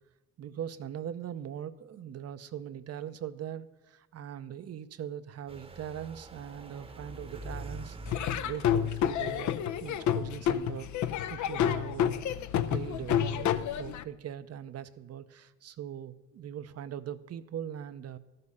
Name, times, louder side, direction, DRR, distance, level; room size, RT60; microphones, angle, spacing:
voice 1, 0.4-12.4 12.7-18.2, right 9 dB, 55° right, 12 dB, 0.6 m, -41 dB
sound 1, 5.5-11.5, right 1 dB, 20° right, 0.9 m, -46 dB
Laughter / Drum, 8.1-14.0, left 10 dB, 70° left, 0.6 m, -29 dB
12.5 x 6.8 x 5.4 m, 1.1 s
cardioid pair, 90°, 30 cm